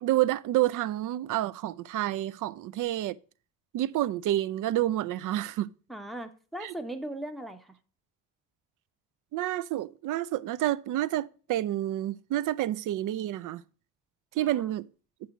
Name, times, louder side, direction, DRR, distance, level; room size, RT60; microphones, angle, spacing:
voice 1, 0.0-3.2 3.7-5.7 6.6-6.7 9.3-13.6 14.4-14.9, right 14 dB, 55° right, 0.4 m, -29 dB
voice 2, 5.9-7.8 14.4-14.7, right 1 dB, ahead, 0.7 m, -39 dB
7.4 x 2.8 x 5.6 m
hypercardioid pair, 50°, 39 cm